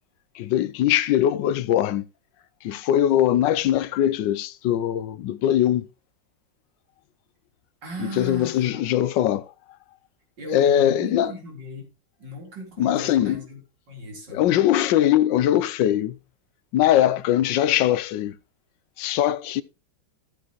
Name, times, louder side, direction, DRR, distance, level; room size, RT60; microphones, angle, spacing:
voice 1, 0.4-2.1 2.6-5.8 8.2-9.5 10.5-11.3 12.8-13.4 14.3-16.1 16.7-18.3 19.0-19.6, left 11 dB, 80° left, 1.3 m, -21 dB
voice 2, 7.8-8.8 10.4-11.9 12.2-13.6 13.9-14.4, right 1 dB, 75° right, 4.5 m, -37 dB
13.5 x 8.4 x 3.0 m
omnidirectional pair, 1.9 m